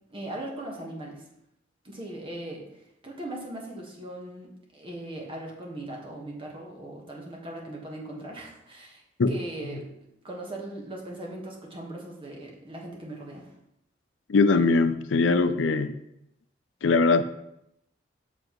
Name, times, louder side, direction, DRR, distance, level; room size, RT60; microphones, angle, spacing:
voice 1, 0.1-1.2 1.8-2.6 3.0-9.0 9.3-9.9 10.2-13.5, right 1 dB, 30° right, -1 dB, 1.5 m, -39 dB
voice 2, 14.3-15.9 16.8-17.2, left 3 dB, 85° left, 11 dB, 0.5 m, -21 dB
7.0 x 6.4 x 3.1 m, 0.80 s
head